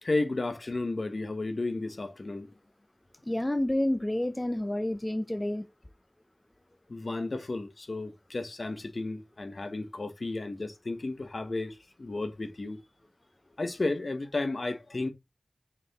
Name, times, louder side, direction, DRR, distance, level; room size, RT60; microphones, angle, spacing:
voice 1, 0.0-2.5 6.9-12.8 13.6-15.1, left 2 dB, 60° left, 1.4 m, -33 dB
voice 2, 3.3-5.6, left 1 dB, 20° left, 0.7 m, -29 dB
6.2 x 4.7 x 3.7 m
wide cardioid pair, 60°, 0 cm